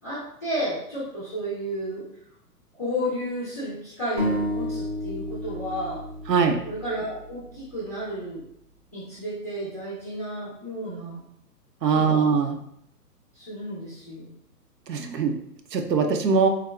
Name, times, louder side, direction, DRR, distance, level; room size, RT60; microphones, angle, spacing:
voice 1, 0.0-2.0 2.8-6.0 6.6-8.4 8.9-11.2 11.9-12.3 13.3-14.3, equal, 10° left, -9 dB, 0.4 m, -32 dB
sound 1, 4.2-7.8, equal, 30° right, 0.7 m, -31 dB
voice 2, 6.3-6.6 11.8-12.6 14.9-15.4 15.7-16.5, right 5 dB, 80° right, 5 dB, 0.7 m, -21 dB
3.4 x 2.7 x 2.3 m, 0.73 s
figure-of-eight pair, 130°, 48 cm